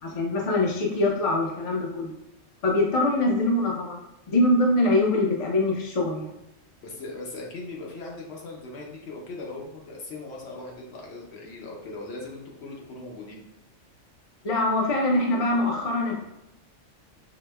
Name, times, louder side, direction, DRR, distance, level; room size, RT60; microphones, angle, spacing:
voice 1, 0.0-2.1 2.6-4.0 4.3-6.3 14.4-16.2, left 2 dB, 40° left, -2 dB, 0.5 m, -23 dB
voice 2, 6.8-13.4, left 2 dB, 65° left, -2 dB, 0.9 m, -39 dB
4.8 x 2.0 x 2.2 m, 0.89 s
omnidirectional pair, 1.3 m